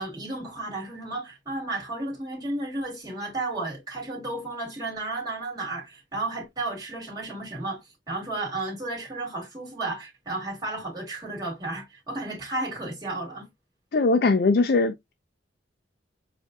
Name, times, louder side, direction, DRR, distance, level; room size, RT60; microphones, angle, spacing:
voice 1, 0.0-13.5, right 2 dB, 20° right, 2.2 m, -33 dB
voice 2, 13.9-15.1, left 3 dB, 55° left, 0.5 m, -21 dB
7.1 x 2.6 x 2.2 m
head